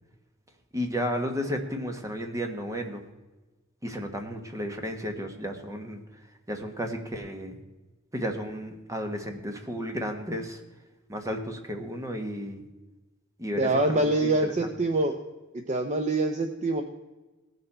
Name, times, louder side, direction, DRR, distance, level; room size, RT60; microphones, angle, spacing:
voice 1, 0.7-3.0 3.8-6.0 6.5-7.6 8.1-10.6 11.1-12.6 13.4-14.5, equal, 15° right, 4 dB, 1.3 m, -33 dB
voice 2, 13.6-15.1 15.7-16.8, right 2 dB, 35° right, 6 dB, 0.6 m, -25 dB
17.5 x 6.8 x 4.3 m, 1.2 s
head